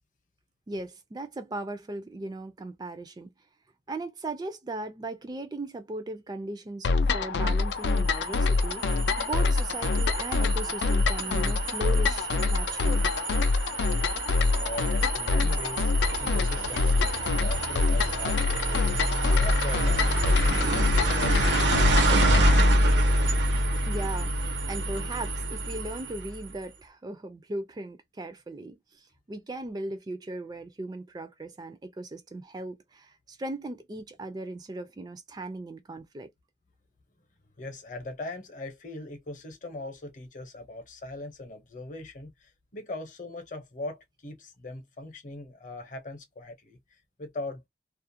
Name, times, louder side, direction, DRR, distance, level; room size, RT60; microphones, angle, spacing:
voice 1, 0.7-3.3 3.9-13.1 20.4-21.0 22.1-22.3 22.7-22.9 23.9-36.3, right 2 dB, 25° right, 0.3 m, -38 dB
sound 1, 6.8-22.7, left 3 dB, 75° left, 0.4 m, -26 dB
sound 2, 8.0-26.5, right 1 dB, 90° right, 0.8 m, -27 dB
voice 2, 14.6-15.9 16.2-19.0 19.4-20.6 21.2-22.1 37.6-47.7, left 2 dB, 45° left, 0.8 m, -40 dB
2.4 x 2.1 x 2.6 m
head